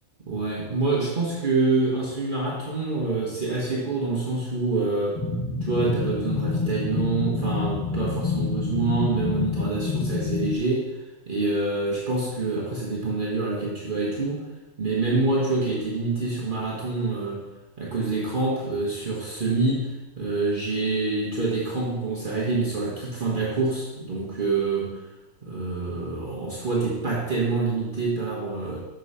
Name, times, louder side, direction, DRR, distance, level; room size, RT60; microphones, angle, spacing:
voice 1, 0.2-5.2 5.6-10.9 11.3-14.4 14.8-17.4 17.8-25.0 25.4-28.8, right 3 dB, 40° right, -6 dB, 1.4 m, -26 dB
sound 1, 5.2-10.6, left 4 dB, 25° left, 0.5 m, -28 dB
6.4 x 4.6 x 5.4 m, 1.1 s
omnidirectional pair, 1.4 m